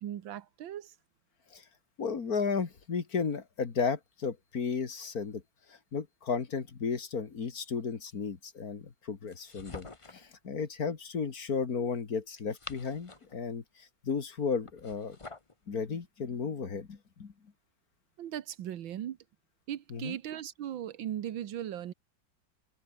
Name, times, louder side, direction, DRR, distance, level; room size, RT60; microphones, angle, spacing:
voice 1, 0.0-0.9 18.2-19.2 19.7-21.9, right 11 dB, 90° right, 1.9 m, -38 dB
voice 2, 2.0-5.4 5.7-15.2 15.7-17.3 19.9-20.2, left 5 dB, 50° left, 2.4 m, -34 dB
sound 1, 9.3-10.3 12.3-13.4 14.6-15.5, left 3 dB, 20° left, 1.2 m, -47 dB
open air
omnidirectional pair, 2.0 m